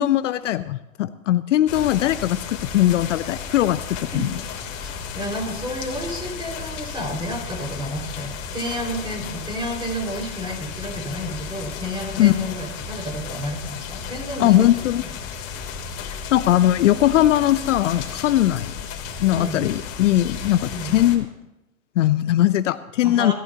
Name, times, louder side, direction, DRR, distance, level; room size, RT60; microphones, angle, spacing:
voice 1, 0.0-4.3 12.2-12.3 14.4-15.0 16.0-18.7 19.2-21.3 22.0-23.3, left 13 dB, 60° left, 14 dB, 0.7 m, -20 dB
sound 1, 1.7-21.2, left 6 dB, 40° left, 3.2 m, -34 dB
voice 2, 4.8-14.7 19.3-19.6 20.7-20.9 23.0-23.3, equal, 10° right, 1 dB, 5.0 m, -31 dB
24.0 x 14.5 x 2.9 m, 0.93 s
hypercardioid pair, 110°, 42 cm